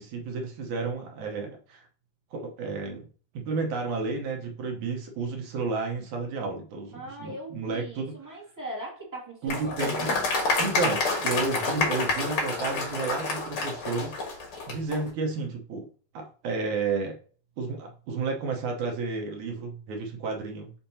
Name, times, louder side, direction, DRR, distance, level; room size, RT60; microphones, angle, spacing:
voice 1, 0.0-1.9 2.3-3.1 3.3-8.3 9.4-10.2 10.6-15.9 16.1-17.2 17.6-20.7, right 4 dB, 70° right, 2 dB, 1.8 m, -32 dB
voice 2, 6.9-10.1, right 1 dB, 10° right, -5 dB, 0.9 m, -40 dB
Applause, 9.5-15.0, left 3 dB, 55° left, 1.4 m, -28 dB
7.1 x 5.0 x 2.8 m, 0.41 s
omnidirectional pair, 4.7 m